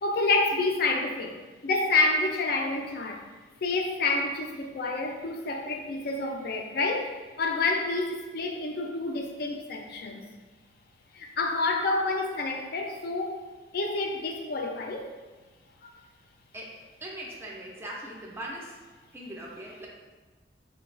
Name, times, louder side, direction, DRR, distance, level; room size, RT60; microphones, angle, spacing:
voice 1, 0.0-1.3 1.6-3.2 3.6-10.2 11.1-13.4 13.7-15.1 15.8-15.9, left 3 dB, 60° left, 3 dB, 0.4 m, -28 dB
voice 2, 16.5-18.8 19.1-19.9, right 1 dB, 15° right, -3 dB, 0.4 m, -40 dB
3.9 x 2.2 x 2.4 m, 1.3 s
head